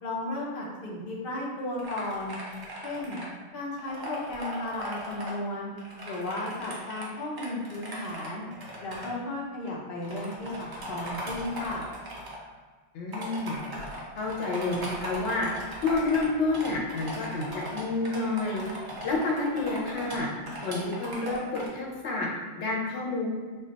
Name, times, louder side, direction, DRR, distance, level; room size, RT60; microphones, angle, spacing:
voice 1, 0.0-2.4 2.8-3.2 3.5-5.7 6.1-8.5 8.8-11.9, left 1 dB, 60° left, -3 dB, 0.8 m, -34 dB
sound 1, 1.8-3.3 3.8-5.3 5.8-9.1 9.7-9.8 10.0-12.4 13.1-21.7, equal, 30° right, 0.4 m, -39 dB
voice 2, 12.9-13.6 14.2-15.5 15.8-18.6 19.0-20.3 20.6-22.3 22.6-23.3, left 3 dB, 90° left, -2 dB, 0.9 m, -29 dB
2.2 x 2.2 x 3.8 m, 1.4 s
omnidirectional pair, 1.1 m